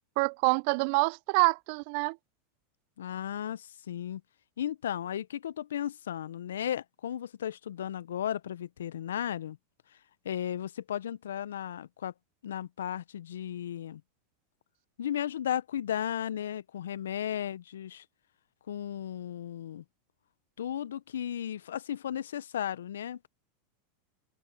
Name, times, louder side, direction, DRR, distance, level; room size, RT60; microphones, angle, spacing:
voice 1, 0.2-2.2, right 31 dB, 55° right, 0.6 m, -26 dB
voice 2, 3.0-4.2 4.6-9.6 10.2-12.1 12.4-14.0 15.0-18.0 18.7-19.8 20.6-23.3, left 10 dB, 75° left, 0.8 m, -35 dB
hypercardioid pair, 90°, 0 cm